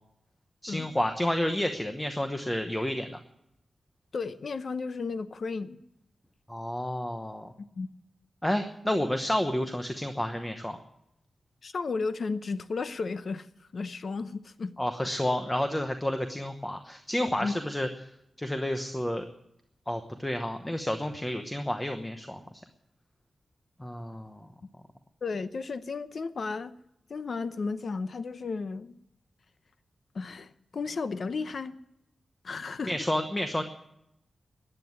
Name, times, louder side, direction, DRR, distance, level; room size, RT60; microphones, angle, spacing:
voice 1, 0.6-3.2 6.5-7.5 8.4-10.8 14.8-17.9 18.4-19.2 19.9-22.4 23.8-24.5 32.8-33.6, left 1 dB, 10° left, 7 dB, 1.0 m, -30 dB
voice 2, 4.1-5.8 7.6-7.9 11.6-13.5 13.7-14.8 17.4-17.6 25.2-26.7 27.1-28.9 30.1-31.8 32.4-32.9, left 4 dB, 60° left, 13 dB, 0.7 m, -33 dB
14.5 x 10.0 x 9.4 m, 0.82 s
wide cardioid pair, 110°, 0 cm